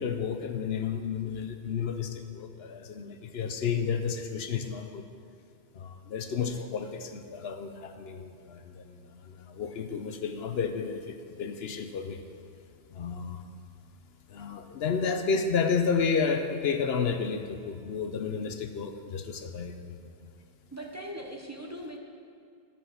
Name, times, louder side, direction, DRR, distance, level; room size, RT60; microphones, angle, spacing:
voice 1, 0.0-5.0 5.7-12.2 12.9-13.4 14.3-20.3, left 6 dB, 70° left, 7 dB, 0.9 m, -31 dB
voice 2, 6.3-6.7 20.7-22.0, right 1 dB, 15° right, 0 dB, 0.8 m, -41 dB
10.5 x 6.2 x 6.6 m, 2.4 s
omnidirectional pair, 1.1 m